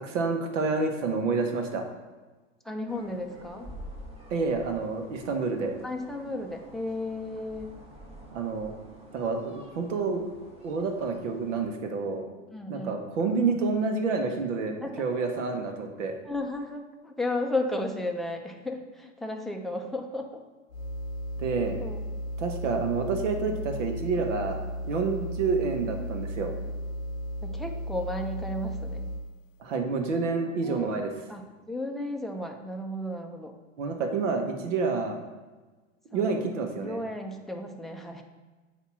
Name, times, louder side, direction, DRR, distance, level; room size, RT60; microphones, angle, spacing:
voice 1, 0.0-1.8 4.3-5.7 8.3-8.7 9.1-10.2 10.6-12.3 12.7-16.1 21.4-21.8 22.4-26.5 29.6-31.1 33.8-35.2 36.1-37.0, right 4 dB, 70° right, 4 dB, 1.2 m, -28 dB
voice 2, 2.6-3.7 5.8-7.8 12.5-13.0 14.8-15.0 16.3-20.4 21.8-22.0 27.4-29.1 30.6-31.4 31.7-33.5 36.1-38.2, left 1 dB, ahead, 2 dB, 0.5 m, -34 dB
sound 1, 2.9-11.7, right 1 dB, 15° right, 1.3 m, -48 dB
sound 2, 20.7-29.4, equal, 85° left, 0.6 m, -35 dB
8.1 x 2.9 x 5.6 m, 1.3 s
hypercardioid pair, 105°, 38 cm